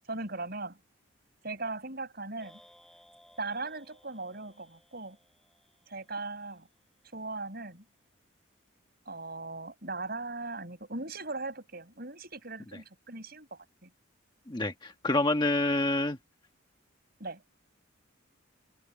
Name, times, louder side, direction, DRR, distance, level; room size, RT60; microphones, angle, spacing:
voice 1, 0.1-0.8 1.4-2.6 3.4-5.2 5.9-6.7 7.1-7.8 9.1-13.9 17.2-17.4, right 3 dB, 45° right, 5.9 m, -39 dB
sound 1, 2.4-6.7, equal, ahead, 7.0 m, -61 dB
voice 2, 14.5-16.2, left 2 dB, 20° left, 1.4 m, -27 dB
head